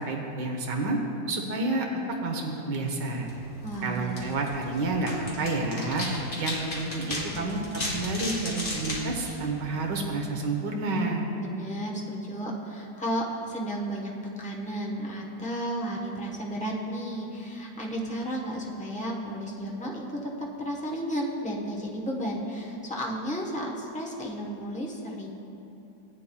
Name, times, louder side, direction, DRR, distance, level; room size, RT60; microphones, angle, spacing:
voice 1, 0.1-1.0 1.3-1.9 2.2-3.3 3.8-6.1 6.4-11.2, right 2 dB, 70° right, 1 dB, 1.7 m, -29 dB
sound 1, 3.2-10.1, left 1 dB, 40° left, 1.8 m, -36 dB
voice 2, 3.6-4.2 11.3-14.1 14.4-25.3, equal, 10° left, -3 dB, 0.5 m, -33 dB
17.0 x 8.5 x 2.3 m, 2.9 s
omnidirectional pair, 2.0 m